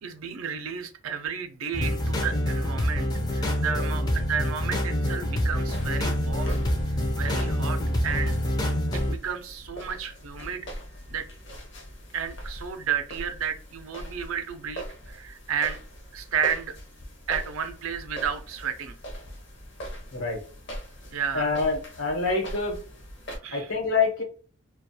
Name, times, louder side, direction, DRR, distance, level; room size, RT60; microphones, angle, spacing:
voice 1, 0.0-6.6 7.2-8.3 8.9-10.7 11.1-11.3 12.1-15.8 16.1-16.7 17.3-18.9 21.1-21.5 23.3-23.7, right 7 dB, 90° right, 8 dB, 0.5 m, -32 dB
sound 1, 1.7-9.2, left 1 dB, 20° left, 0.4 m, -26 dB
sound 2, 5.6-23.4, equal, 60° left, 0.7 m, -41 dB
voice 2, 20.1-20.4 21.3-22.8 23.5-24.2, left 4 dB, 80° left, 1 dB, 1.0 m, -26 dB
2.3 x 2.3 x 2.7 m, 0.40 s
head